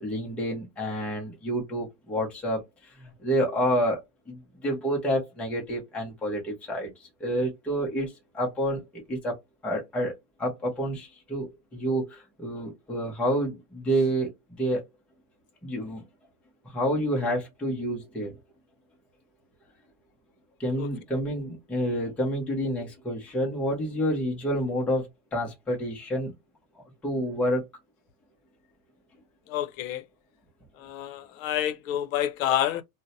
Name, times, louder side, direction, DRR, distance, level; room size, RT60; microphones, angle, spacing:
voice 1, 0.0-4.0 4.3-9.3 9.6-10.1 10.4-14.3 14.6-14.8 15.6-16.0 16.7-18.4 20.6-26.3 27.0-27.7, equal, 5° left, 0.4 m, -29 dB
voice 2, 29.5-30.0 30.8-32.8, left 11 dB, 90° left, 0.6 m, -28 dB
2.6 x 2.1 x 3.9 m
supercardioid pair, 170°, 39 cm